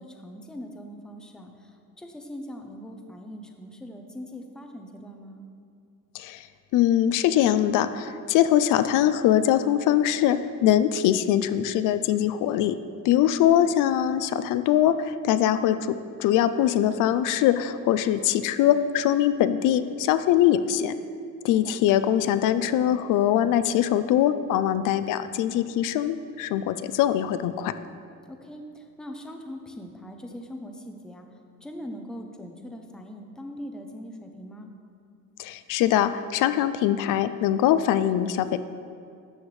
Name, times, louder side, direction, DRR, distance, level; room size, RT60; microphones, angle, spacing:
voice 1, 0.0-5.4 13.4-13.7 21.5-21.8 28.3-31.3 31.6-34.7, equal, ahead, 3 dB, 0.5 m, -41 dB
voice 2, 6.7-12.8 13.0-21.0 21.4-27.7 35.4-38.6, left 11 dB, 75° left, 12 dB, 0.5 m, -22 dB
12.5 x 8.7 x 3.2 m, 2.4 s
cardioid pair, 175°, 32 cm